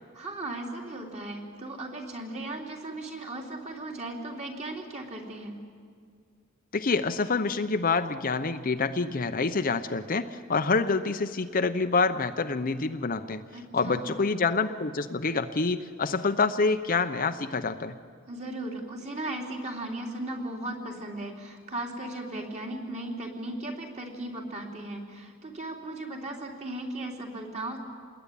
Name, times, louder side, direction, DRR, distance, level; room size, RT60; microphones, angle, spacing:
voice 1, 0.1-5.6 13.5-14.1 18.3-27.8, right 1 dB, 30° right, 1 dB, 3.6 m, -37 dB
voice 2, 6.7-13.4 13.7-17.9, left 4 dB, 40° left, 9 dB, 0.7 m, -27 dB
27.0 x 20.0 x 10.0 m, 2.1 s
head